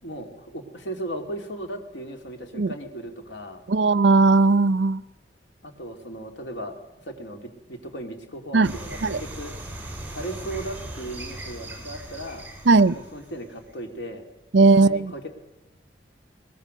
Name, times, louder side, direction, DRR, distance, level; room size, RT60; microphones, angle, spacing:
voice 1, 0.0-3.6 5.6-9.5 10.1-12.5 12.9-14.2 14.5-15.3, right 1 dB, 85° left, 2.9 m, -36 dB
voice 2, 3.7-5.0 8.5-8.7 9.0-9.2 12.7-12.9 14.5-15.0, right 3 dB, 75° right, 0.6 m, -17 dB
sound 1, 8.6-13.7, right 1 dB, 10° right, 4.2 m, -38 dB
22.0 x 20.0 x 6.6 m
head